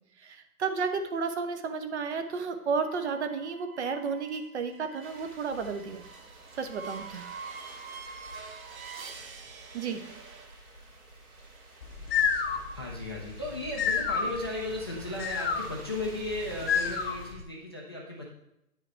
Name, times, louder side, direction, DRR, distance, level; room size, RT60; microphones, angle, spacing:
voice 1, 0.2-6.0 6.6-7.4 9.7-10.0, right 5 dB, 50° right, 8 dB, 0.9 m, -32 dB
sound 1, 2.8-10.5, right 5 dB, 65° right, 1.3 m, -46 dB
sound 2, 5.0-17.3, right 2 dB, 85° right, 2.4 m, -51 dB
sound 3, 11.8-17.4, left 6 dB, 40° left, 0.8 m, -31 dB
voice 2, 12.7-18.3, left 1 dB, 20° left, -4 dB, 0.4 m, -36 dB
9.4 x 4.9 x 4.4 m, 0.84 s
hypercardioid pair, 155°, 45 cm